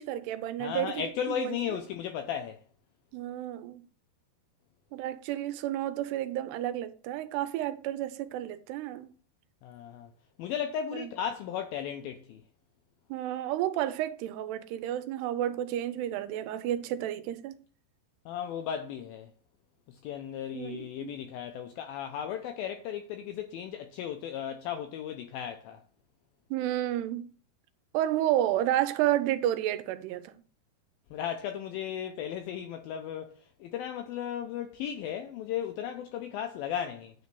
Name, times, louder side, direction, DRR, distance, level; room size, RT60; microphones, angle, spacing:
voice 1, 0.0-1.8 3.1-3.9 4.9-9.1 10.9-11.1 13.1-17.6 20.5-21.1 26.5-27.3 27.9-30.4, right 12 dB, 85° right, 2.7 m, -31 dB
voice 2, 0.6-2.6 9.6-10.1 10.4-12.4 18.3-19.3 20.0-25.8 31.1-37.1, left 9 dB, 80° left, 2.2 m, -35 dB
9.5 x 3.9 x 6.7 m
omnidirectional pair, 4.7 m